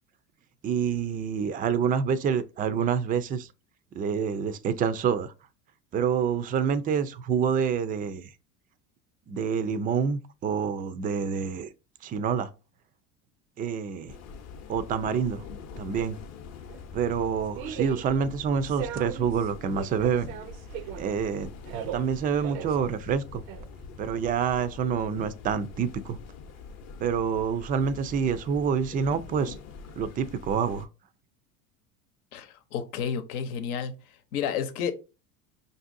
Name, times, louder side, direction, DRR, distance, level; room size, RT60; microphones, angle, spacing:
voice 1, 0.6-3.5 3.9-5.3 5.9-8.3 9.3-11.7 12.0-12.5 13.6-14.1 14.7-15.4 15.8-16.2 16.9-20.3 21.0-21.5 21.9-23.4 24.0-26.2 27.0-29.6 30.0-30.9, right 6 dB, 20° right, 0.3 m, -27 dB
sound 1, 14.1-30.9, left 5 dB, 40° left, 0.7 m, -44 dB
sound 2, 16.7-24.4, right 10 dB, 75° right, 0.5 m, -39 dB
voice 2, 32.3-33.9 34.3-34.9, left 7 dB, 80° left, 0.9 m, -31 dB
5.3 x 2.6 x 2.5 m
hypercardioid pair, 85°, 43 cm